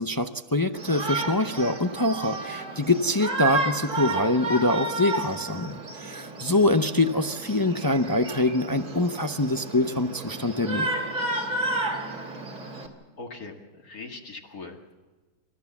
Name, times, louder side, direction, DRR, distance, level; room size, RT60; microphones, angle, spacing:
voice 1, 0.0-10.9, left 2 dB, 30° left, 8 dB, 0.3 m, -24 dB
Shout, 0.7-12.9, right 2 dB, 75° right, 3.1 m, -32 dB
voice 2, 13.2-14.9, left 3 dB, 70° left, 1 dB, 2.6 m, -41 dB
28.5 x 14.5 x 7.2 m, 1.3 s
omnidirectional pair, 1.6 m